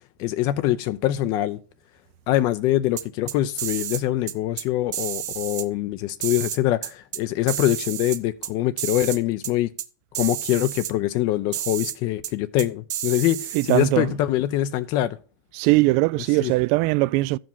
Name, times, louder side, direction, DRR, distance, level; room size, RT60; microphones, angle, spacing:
voice 1, 0.2-1.6 2.3-9.7 10.2-15.2 16.4-16.5, left 14 dB, 45° left, 0.6 m, -24 dB
sound 1, 3.0-4.0 4.3-4.6 4.9-5.7 6.2-7.2 7.5-8.5 8.8-9.2 9.4-9.5 9.8-9.9 10.1-10.9 11.5-12.0 12.2-12.3 12.6-13.9, right 12 dB, 70° right, 0.9 m, -31 dB
voice 2, 13.5-14.1 15.5-17.4, right 22 dB, 50° right, 0.4 m, -20 dB
12.5 x 5.1 x 5.5 m
supercardioid pair, 125°, 10 cm